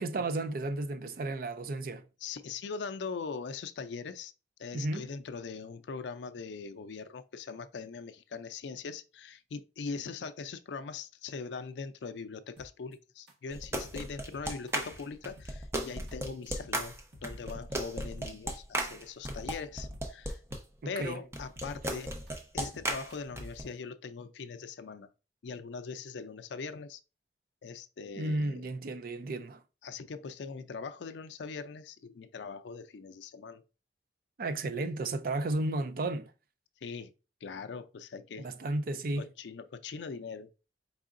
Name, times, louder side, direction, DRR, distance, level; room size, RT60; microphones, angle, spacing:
voice 1, 0.0-2.0 4.7-5.1 21.0-21.2 28.2-29.6 34.4-36.3 38.4-39.2, right 2 dB, 55° right, 0.4 m, -33 dB
voice 2, 2.2-4.3 4.6-17.0 17.2-20.4 20.8-22.1 22.5-25.1 25.4-27.0 27.6-28.7 29.8-33.6 34.8-34.9 36.8-37.1 37.4-38.5 39.2-40.5, left 5 dB, 80° left, 0.4 m, -41 dB
sound 1, 12.6-12.9 13.3-13.4 13.6-14.0 14.3-15.0 15.4-16.1 16.4-16.8 17.1-18.6 18.9-19.0 19.2-19.6 19.9-20.7 21.0-21.8 22.0-23.6, left 1 dB, 70° right, 1.3 m, -54 dB
sound 2, 13.5-20.6 21.3-23.6, right 1 dB, 15° right, 0.6 m, -36 dB
4.8 x 3.6 x 2.5 m
head